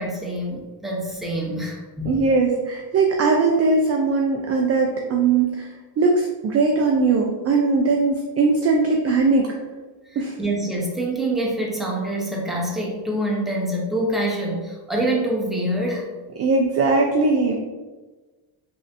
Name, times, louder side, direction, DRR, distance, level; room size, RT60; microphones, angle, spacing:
voice 1, 0.0-2.1 10.1-16.1, right 1 dB, ahead, -3 dB, 0.7 m, -26 dB
voice 2, 2.0-5.7 6.0-9.5 10.2-10.4 16.3-17.5, right 3 dB, 35° right, 1 dB, 0.4 m, -20 dB
3.1 x 2.8 x 2.5 m, 1.2 s
supercardioid pair, 80°, 49 cm